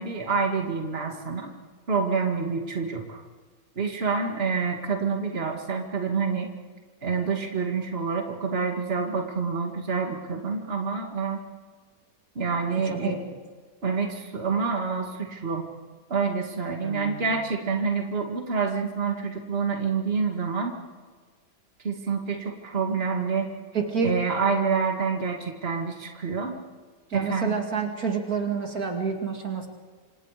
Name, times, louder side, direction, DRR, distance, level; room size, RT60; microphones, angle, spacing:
voice 1, 0.0-1.5 1.9-3.2 3.8-6.5 7.0-11.4 12.4-13.1 13.8-15.7 16.1-20.8 21.8-23.5 24.0-26.6 27.1-27.6, right 5 dB, 40° right, 2 dB, 2.4 m, -27 dB
voice 2, 12.8-13.2 16.8-17.3 23.7-24.2 27.1-29.7, right 5 dB, 70° right, 3 dB, 3.0 m, -28 dB
28.0 x 26.0 x 5.1 m, 1.5 s
omnidirectional pair, 1.6 m